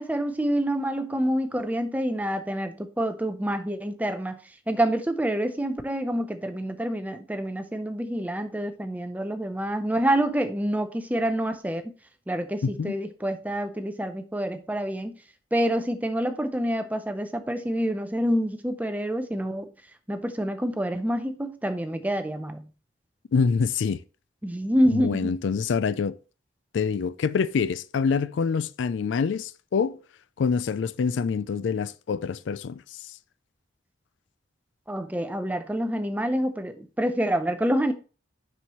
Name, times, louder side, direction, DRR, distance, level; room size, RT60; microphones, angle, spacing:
voice 1, 0.0-4.4 4.7-11.9 12.3-15.2 15.5-19.7 20.1-22.7 24.4-25.4 34.9-37.9, equal, 10° right, 0.5 m, -27 dB
voice 2, 12.6-12.9 23.3-24.0 24.9-26.2 26.7-30.0 30.4-33.0, left 5 dB, 75° left, 0.3 m, -26 dB
7.0 x 6.2 x 3.0 m
head